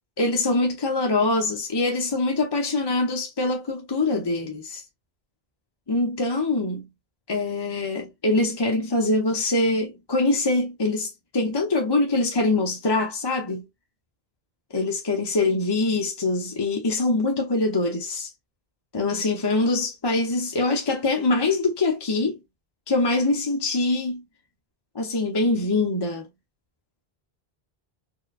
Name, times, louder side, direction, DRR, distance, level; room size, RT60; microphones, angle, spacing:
voice 1, 0.2-4.8 5.9-6.9 7.3-13.6 14.7-18.3 18.9-22.4 22.9-24.2 24.9-26.3, left 2 dB, 30° left, 0.6 m, -24 dB
4.5 x 2.2 x 2.4 m
omnidirectional pair, 1.0 m